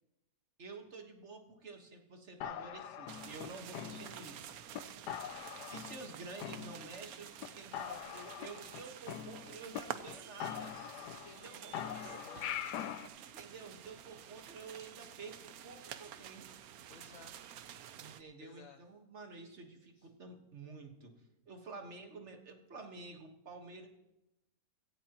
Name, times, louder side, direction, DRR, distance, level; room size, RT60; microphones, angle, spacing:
voice 1, 0.6-4.6 5.7-10.8 11.4-12.2 13.2-16.5 18.0-21.1 21.5-23.9, right 3 dB, 45° right, 4 dB, 1.7 m, -50 dB
sound 1, 2.4-4.4 4.7-4.8 5.1-6.1 6.4-7.1 7.4-7.5 7.7-9.8 10.1-10.2 10.4-11.4 11.7-13.1, left 10 dB, 80° left, 1.3 m, -43 dB
sound 2, 3.1-18.2, right 10 dB, 70° right, 1.1 m, -50 dB
voice 2, 11.1-13.0 16.9-17.3 18.4-18.8 19.9-20.1, left 5 dB, 60° left, 6 dB, 1.2 m, -57 dB
16.5 x 15.0 x 3.0 m, 0.89 s
omnidirectional pair, 1.7 m